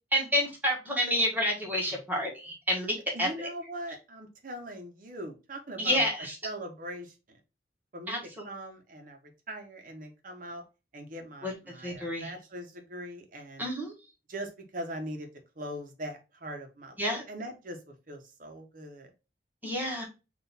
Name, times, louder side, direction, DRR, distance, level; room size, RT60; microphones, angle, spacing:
voice 1, 0.1-3.5 5.8-6.4 8.1-8.5 11.4-11.5 11.8-12.3 13.6-13.9 17.0-17.2 19.6-20.1, equal, 10° right, -1 dB, 1.3 m, -29 dB
voice 2, 3.1-6.1 6.4-7.4 7.9-9.2 9.5-10.6 10.9-13.7 14.3-15.3 15.6-17.0 17.3-17.8 18.1-19.1, right 1 dB, 50° right, 4 dB, 0.8 m, -41 dB
3.8 x 2.5 x 3.9 m, 0.29 s
head